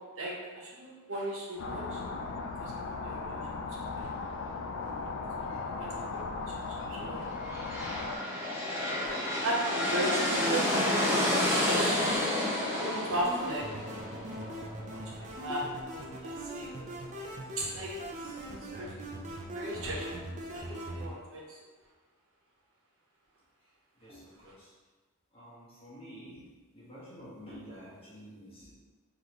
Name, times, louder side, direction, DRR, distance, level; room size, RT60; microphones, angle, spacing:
voice 1, 0.2-2.0 2.6-3.3 4.0-4.1 5.7-6.2 6.9-7.3 9.0-9.1 9.4-12.2 12.7-13.7 14.9-15.6 15.9-16.9 17.1-17.3 17.6-18.0 18.7-18.9 19.2-20.1 20.5-21.6, right 1 dB, 65° right, -3 dB, 1.0 m, -36 dB
sound 1, 1.6-8.2, left 4 dB, 55° left, 0.4 m, -37 dB
sound 2, 7.3-15.0, left 1 dB, 10° right, 0.8 m, -30 dB
sound 3, 13.1-21.1, right 1 dB, 35° right, 0.5 m, -41 dB
voice 2, 24.0-24.7 25.3-28.7, equal, 25° left, -7 dB, 1.2 m, -49 dB
3.9 x 3.4 x 3.0 m, 1.3 s
head